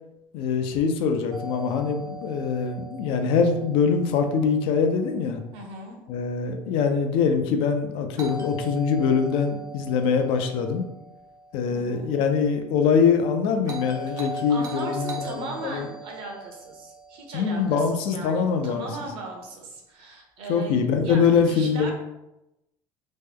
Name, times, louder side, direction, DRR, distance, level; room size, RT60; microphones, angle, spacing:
voice 1, 0.3-5.4 6.1-10.9 11.5-15.8 17.3-18.9 20.5-21.9, left 6 dB, 60° left, 6 dB, 0.4 m, -23 dB
Doorbell, 1.3-5.3 8.2-12.4 13.7-18.1, right 1 dB, 30° right, 0.5 m, -39 dB
voice 2, 5.5-6.0 11.7-12.1 14.1-14.2 14.5-21.9, right 2 dB, 60° right, 1 dB, 0.8 m, -38 dB
3.0 x 2.2 x 3.4 m, 0.92 s
cardioid pair, 165°, 10 cm